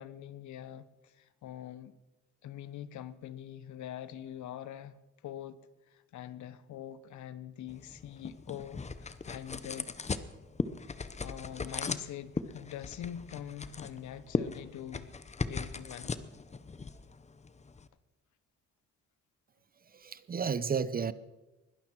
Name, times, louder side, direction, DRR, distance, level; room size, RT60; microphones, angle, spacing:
voice 1, 0.0-2.0 2.4-5.0 5.2-5.6 5.9-9.9 11.0-15.1 15.5-16.2, left 10 dB, 70° left, 0.9 m, -44 dB
sound 1, 7.7-17.9, left 4 dB, 20° left, 0.8 m, -38 dB
voice 2, 19.9-21.1, right 6 dB, 30° right, 0.6 m, -32 dB
21.0 x 12.0 x 4.5 m
cardioid pair, 90°, 30 cm